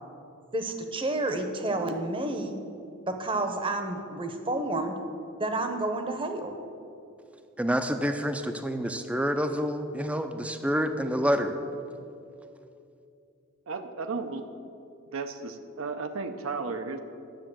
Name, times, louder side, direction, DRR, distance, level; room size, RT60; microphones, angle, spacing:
voice 1, 0.5-2.6 3.1-5.0 5.4-6.5, right 2 dB, 25° right, 6 dB, 0.9 m, -30 dB
voice 2, 7.6-11.5, equal, 5° right, 8 dB, 0.5 m, -28 dB
voice 3, 13.7-14.4 15.1-17.0, right 4 dB, 75° right, 7 dB, 0.7 m, -34 dB
10.5 x 6.9 x 7.5 m, 2.6 s
head